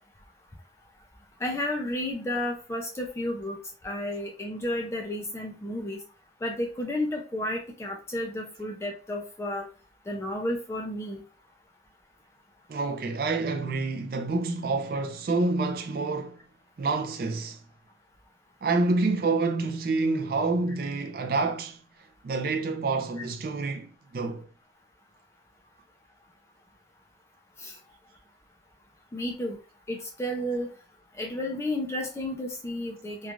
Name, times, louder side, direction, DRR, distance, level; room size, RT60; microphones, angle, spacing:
voice 1, 1.4-3.6 3.8-6.0 6.4-9.7 10.1-11.2 27.6-27.8 29.1-29.6 29.9-30.7 31.2-33.3, left 1 dB, 15° left, 0.4 m, -32 dB
voice 2, 12.7-16.4 16.8-17.6 18.6-21.8 22.2-24.5, right 3 dB, 55° right, 0.4 m, -28 dB
3.1 x 2.3 x 2.4 m
head